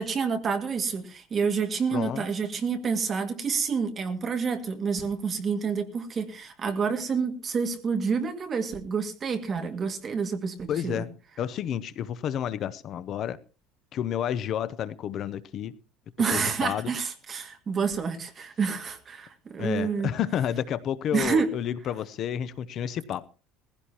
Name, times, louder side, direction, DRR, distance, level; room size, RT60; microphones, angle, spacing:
voice 1, 0.0-11.0 16.2-20.1 21.1-21.5, right 5 dB, 25° right, 2.0 m, -28 dB
voice 2, 1.9-2.2 10.7-11.1 11.4-13.4 13.9-15.7 16.3-16.9 19.6-23.2, left 9 dB, 40° left, 0.6 m, -30 dB
19.5 x 16.0 x 2.9 m
cardioid pair, 160°, 0 cm